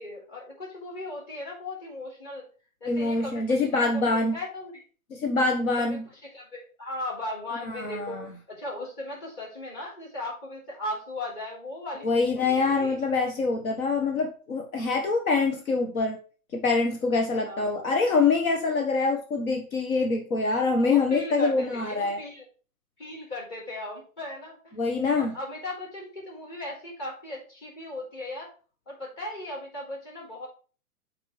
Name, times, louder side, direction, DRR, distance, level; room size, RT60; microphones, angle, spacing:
voice 1, 0.0-2.4 2.8-4.8 5.8-13.0 17.4-17.9 20.7-22.4 23.0-24.7 25.2-28.5 28.9-30.5, left 2 dB, 30° left, -3 dB, 4.5 m, -37 dB
voice 2, 2.9-4.4 5.1-6.1 7.7-8.3 12.0-16.2 16.5-22.2 24.8-25.3, left 3 dB, 70° left, 2 dB, 1.5 m, -25 dB
12.0 x 4.7 x 3.3 m, 0.38 s
hypercardioid pair, 160°, 43 cm